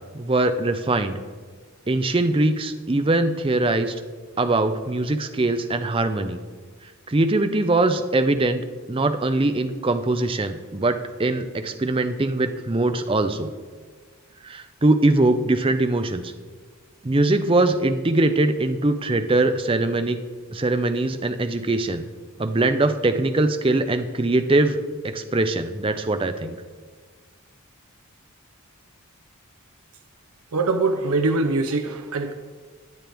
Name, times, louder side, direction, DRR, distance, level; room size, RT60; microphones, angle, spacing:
voice 1, 0.1-1.2 1.9-3.9 4.4-6.4 7.1-8.6 8.9-13.5 14.4-16.2 17.0-20.2 20.5-22.1 22.4-24.8 25.0-26.6, right 2 dB, 25° right, 8 dB, 0.5 m, -22 dB
voice 2, 30.5-32.3, right 3 dB, 80° right, 5 dB, 0.7 m, -23 dB
20.0 x 7.7 x 3.5 m, 1.5 s
head